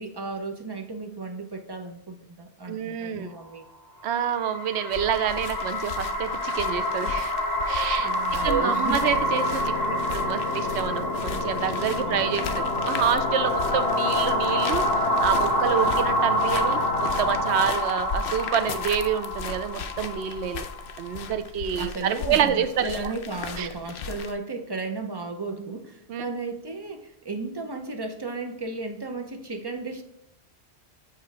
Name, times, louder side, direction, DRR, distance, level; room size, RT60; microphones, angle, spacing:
voice 1, 0.0-3.7 8.0-9.1 12.0-12.6 21.8-30.0, right 3 dB, 30° right, 4 dB, 0.6 m, -34 dB
voice 2, 2.7-3.3 4.0-7.3 7.7-8.1 8.4-20.6 21.0-23.0 23.6-23.7 26.1-26.2, right 8 dB, 85° right, 11 dB, 0.8 m, -28 dB
sound 1, 4.1-21.3, left 1 dB, 40° left, 1.1 m, -27 dB
sound 2, 4.9-24.3, left 5 dB, 65° left, 0.8 m, -37 dB
sound 3, 9.0-17.7, left 4 dB, 85° left, 1.1 m, -33 dB
7.3 x 3.0 x 4.8 m, 0.77 s
omnidirectional pair, 1.1 m